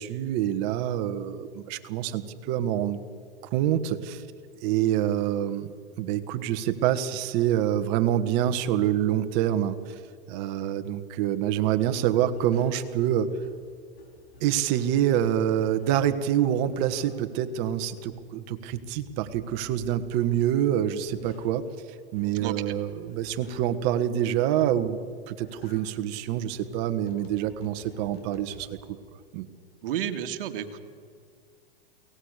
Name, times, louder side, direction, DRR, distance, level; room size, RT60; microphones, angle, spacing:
voice 1, 0.0-3.0 3.5-4.2 4.6-5.7 6.0-9.8 10.3-13.3 14.4-21.6 22.1-25.0 25.3-29.0 29.3-29.5, right 11 dB, 45° right, 10 dB, 1.6 m, -26 dB
sound 1, 11.4-11.7 12.2-13.1 13.4-15.2 15.6-16.2 16.5-17.5 17.8-20.5 20.9-23.9 24.3-24.9 25.3-28.9, left 2 dB, 85° left, 5.7 m, -52 dB
voice 2, 22.4-22.7 29.8-30.8, right 10 dB, 65° right, 7 dB, 2.1 m, -31 dB
23.0 x 18.0 x 6.7 m, 2.1 s
hypercardioid pair, 130°, 30 cm